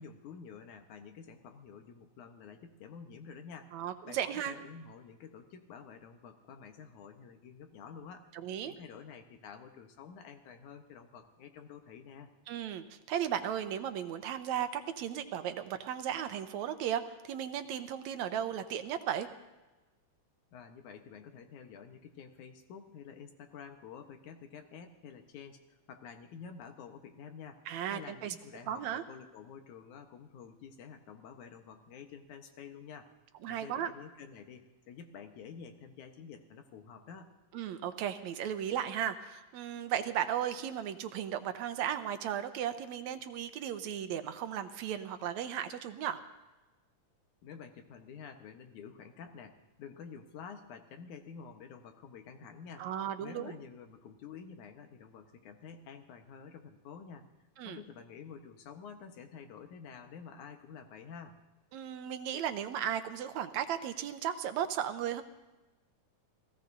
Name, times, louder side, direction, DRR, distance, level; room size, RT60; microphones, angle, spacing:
voice 1, 0.0-3.7 4.1-4.2 4.5-8.3 8.6-12.3 20.5-25.6 25.9-27.6 27.9-33.1 33.5-37.3 47.4-52.9 53.2-57.3 57.6-61.3, left 6 dB, 85° left, 5 dB, 2.7 m, -49 dB
voice 2, 3.7-4.6 8.3-8.7 12.5-19.3 27.7-28.4 28.7-29.0 33.4-33.9 37.5-46.2 52.8-53.5 57.6-57.8 61.7-65.2, right 10 dB, 80° right, 9 dB, 2.1 m, -35 dB
28.5 x 18.0 x 2.7 m, 1.1 s
omnidirectional pair, 3.4 m